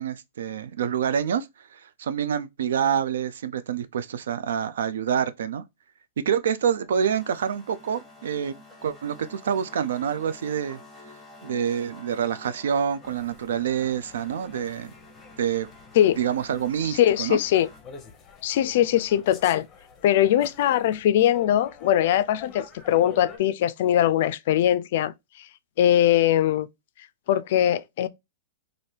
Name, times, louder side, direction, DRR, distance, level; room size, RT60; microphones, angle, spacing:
voice 1, 0.0-5.6 6.2-8.5 8.8-10.8 11.4-14.9 15.4-15.7 16.2-17.4, right 8 dB, 80° right, 0.3 m, -27 dB
sound 1, 6.7-17.8, left 2 dB, 5° left, 1.0 m, -49 dB
sound 2, 13.0-23.4, left 6 dB, 25° left, 0.7 m, -47 dB
voice 2, 17.0-17.7 18.4-19.6 20.0-25.5 25.8-26.7 27.3-28.1, left 11 dB, 60° left, 0.3 m, -21 dB
2.7 x 2.5 x 3.2 m
hypercardioid pair, 135°, 0 cm